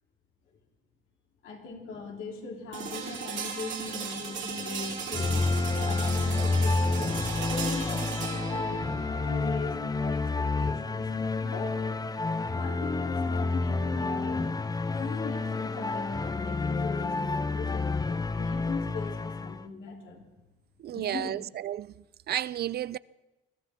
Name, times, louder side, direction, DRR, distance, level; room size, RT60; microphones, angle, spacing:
voice 1, 1.4-11.1 11.4-11.8 12.6-14.6 14.9-20.2 20.9-21.4, left 4 dB, 80° left, 3.2 m, -39 dB
sound 1, 2.7-12.6, right 6 dB, 70° right, 3.3 m, -38 dB
sound 2, 5.1-19.6, left 3 dB, 20° left, 0.5 m, -29 dB
voice 2, 20.8-21.9 22.3-23.0, right 12 dB, 55° right, 0.4 m, -32 dB
22.0 x 13.5 x 3.5 m
cardioid pair, 90°, 20 cm